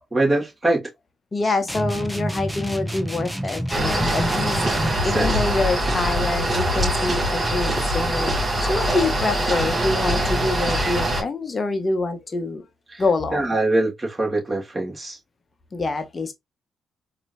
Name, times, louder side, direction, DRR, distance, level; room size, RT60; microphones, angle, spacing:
voice 1, 0.1-0.9 1.4-1.5 5.1-5.3 12.9-13.0 13.3-15.2, right 2 dB, 20° right, 2.6 m, -23 dB
voice 2, 1.3-12.7 13.0-13.5 15.7-16.3, left 3 dB, 35° left, 1.1 m, -26 dB
sound 1, 1.7-5.1, equal, ahead, 0.8 m, -28 dB
sound 2, 3.7-11.2, right 1 dB, 40° right, 2.8 m, -23 dB
4.4 x 3.0 x 2.7 m
hypercardioid pair, 50°, 0 cm